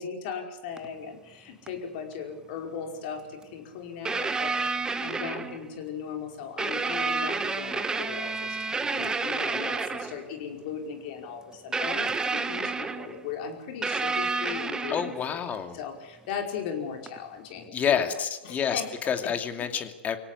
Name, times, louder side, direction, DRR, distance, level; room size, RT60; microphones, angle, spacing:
voice 1, 0.0-4.6 5.0-15.5 15.7-18.1 18.4-18.9 19.6-19.7, left 7 dB, 55° left, 4 dB, 5.0 m, -38 dB
sound 1, 0.8-0.9 1.7-1.8 3.4-3.5 4.1-5.7 6.6-10.2 11.7-13.2 13.8-15.3 17.1-17.2, right 4 dB, 10° right, 1.5 m, -30 dB
voice 2, 14.9-15.8 17.6-20.2, left 7 dB, 25° left, 7 dB, 2.6 m, -29 dB
24.5 x 17.5 x 8.3 m, 0.97 s
hypercardioid pair, 110°, 6 cm